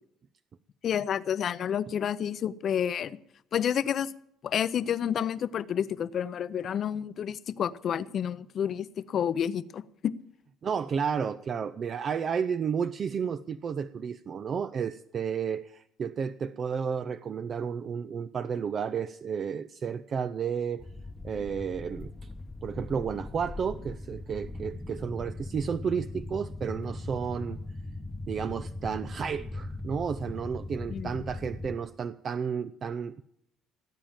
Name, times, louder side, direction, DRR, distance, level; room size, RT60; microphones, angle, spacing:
voice 1, 0.8-3.2 3.5-4.1 4.4-10.1 30.9-31.1, left 9 dB, 50° left, 16 dB, 0.6 m, -30 dB
voice 2, 10.6-20.9 21.2-22.1 22.6-27.6 28.3-33.2, right 6 dB, 40° right, 13 dB, 0.5 m, -32 dB
sound 1, 20.8-31.8, left 2 dB, 10° left, 0.9 m, -40 dB
17.5 x 8.7 x 7.4 m, 0.75 s
cardioid pair, 115°, 0 cm